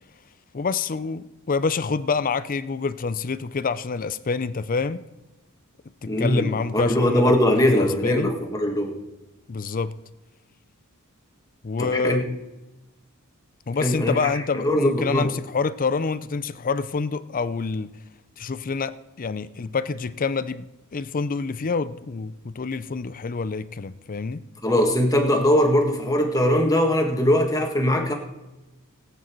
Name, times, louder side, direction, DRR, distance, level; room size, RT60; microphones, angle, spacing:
voice 1, 0.5-5.0 6.0-8.3 9.5-9.9 11.6-12.2 13.7-17.9 18.4-20.7 20.9-24.4, left 4 dB, 40° left, 0.5 m, -27 dB
voice 2, 6.1-9.0 11.8-12.2 13.8-14.3 14.5-15.3 24.6-28.1, left 1 dB, 15° left, 1.6 m, -21 dB
18.5 x 9.0 x 4.5 m
head